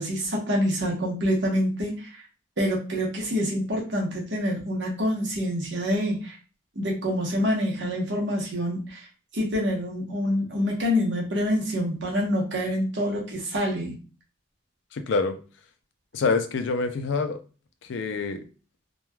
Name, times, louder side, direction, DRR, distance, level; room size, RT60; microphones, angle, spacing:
voice 1, 0.0-2.2 2.6-6.4 6.8-9.1 9.3-14.0, equal, 60° right, -1 dB, 0.9 m, -26 dB
voice 2, 14.9-15.4 16.1-17.4 17.9-18.5, left 4 dB, 65° left, 8 dB, 0.4 m, -26 dB
3.1 x 2.2 x 2.2 m, 0.35 s
head